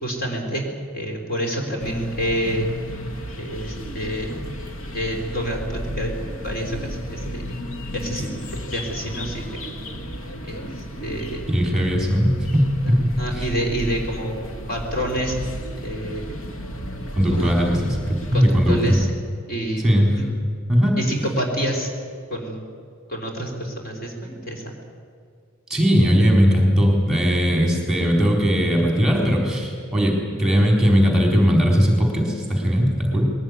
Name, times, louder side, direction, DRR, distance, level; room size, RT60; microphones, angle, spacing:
voice 1, 0.0-0.6 0.9-2.7 3.4-4.5 4.9-7.4 7.9-9.7 10.4-10.7 11.0-11.4 13.2-14.3 14.7-15.4 15.8-16.4 17.3-17.5 18.3-19.1 19.5-19.9 20.1-20.3 21.0-21.9 22.3-22.7 23.1-24.8, right 1 dB, 45° left, 1 dB, 3.9 m, -28 dB
sound 1, 1.8-19.1, equal, 80° left, 1.8 m, -33 dB
voice 2, 11.5-13.5 17.1-19.0 19.8-20.1 20.7-21.0 25.7-33.2, equal, 5° right, 0 dB, 3.8 m, -19 dB
21.0 x 18.0 x 9.5 m, 2.2 s
head